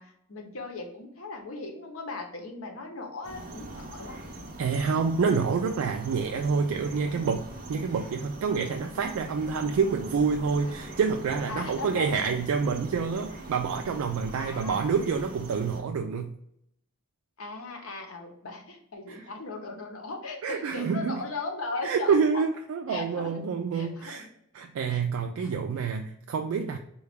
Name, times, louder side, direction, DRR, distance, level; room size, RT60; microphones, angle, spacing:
voice 1, 0.0-4.2 11.5-12.1 14.4-14.9 17.4-22.4 22.9-23.4 23.7-24.3 24.9-25.6, left 3 dB, 85° left, 3 dB, 0.8 m, -38 dB
sound 1, 3.2-15.8, right 1 dB, 40° right, 0.7 m, -42 dB
voice 2, 4.6-16.3 19.1-19.3 20.4-21.2 21.8-24.3 24.5-26.8, right 5 dB, 85° right, 4 dB, 0.3 m, -27 dB
3.8 x 2.3 x 3.4 m, 0.76 s
head